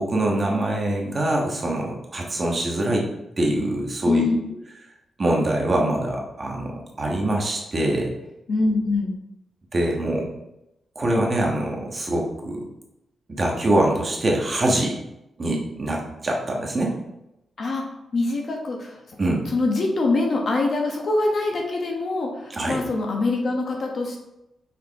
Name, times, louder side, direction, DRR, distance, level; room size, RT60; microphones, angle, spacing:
voice 1, 0.0-3.1 3.4-4.2 5.2-8.1 9.7-10.3 10.9-12.7 13.3-15.0 15.4-17.0 19.2-19.5 22.5-22.8, right 1 dB, 35° right, -1 dB, 1.3 m, -24 dB
voice 2, 4.0-4.4 8.5-9.1 17.6-17.8 18.1-19.0 19.5-24.2, left 2 dB, 50° left, 0 dB, 1.2 m, -24 dB
5.7 x 4.5 x 3.6 m, 0.89 s
wide cardioid pair, 120°, 0 cm